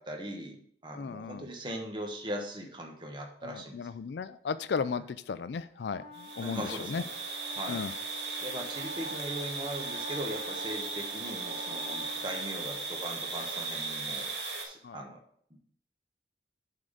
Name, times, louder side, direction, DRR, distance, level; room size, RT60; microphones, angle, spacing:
voice 1, 0.0-3.8 5.0-5.1 6.4-7.0 7.5-7.9 8.4-14.3 14.6-15.2, equal, 25° right, 2 dB, 1.1 m, -39 dB
voice 2, 0.9-1.5 3.4-7.0 7.7-7.9 14.8-15.0, left 5 dB, 75° left, 13 dB, 0.4 m, -35 dB
Wind instrument woodwind instrument, 5.8-13.4, equal, 45° left, 1.4 m, -46 dB
sound 1, 6.1-14.6, right 4 dB, 75° right, 2.2 m, -37 dB
7.6 x 3.8 x 6.5 m, 0.65 s
head